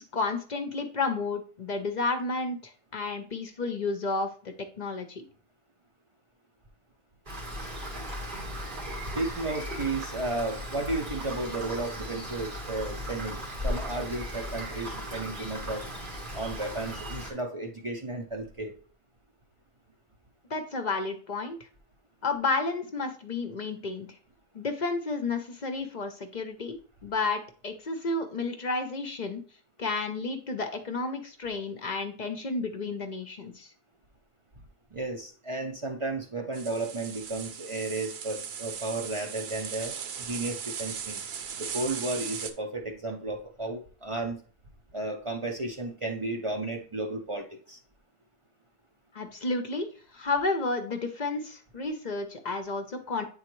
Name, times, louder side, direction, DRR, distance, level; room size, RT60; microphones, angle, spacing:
voice 1, 0.0-5.3 20.5-21.6 22.2-24.2 24.5-29.4 29.8-33.7 49.1-49.9 50.1-53.3, left 3 dB, 50° left, 6 dB, 0.7 m, -31 dB
Rain, 7.3-17.3, equal, 55° right, 1.7 m, -37 dB
voice 2, 9.1-15.8 16.3-18.7 34.9-39.9 40.2-41.2 41.6-44.4 44.9-47.8, right 2 dB, 35° right, 2 dB, 0.6 m, -33 dB
sound 1, 36.5-42.5, right 7 dB, 85° right, 0.9 m, -38 dB
8.7 x 3.8 x 3.0 m, 0.42 s
omnidirectional pair, 1.0 m